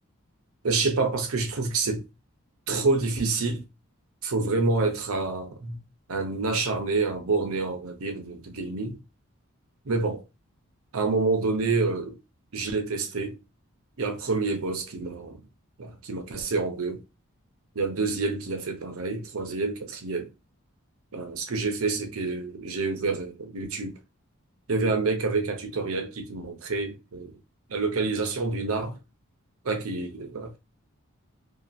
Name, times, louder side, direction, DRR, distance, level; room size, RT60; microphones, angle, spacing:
voice 1, 0.6-2.1 2.7-3.7 4.2-5.8 6.1-9.0 9.9-10.2 10.9-12.2 12.5-13.4 14.0-15.4 15.8-17.0 17.7-20.3 21.1-24.0 24.7-27.4 27.7-29.0 29.6-30.6, right 3 dB, 75° right, 0.6 m, -28 dB
2.8 x 2.2 x 2.4 m
head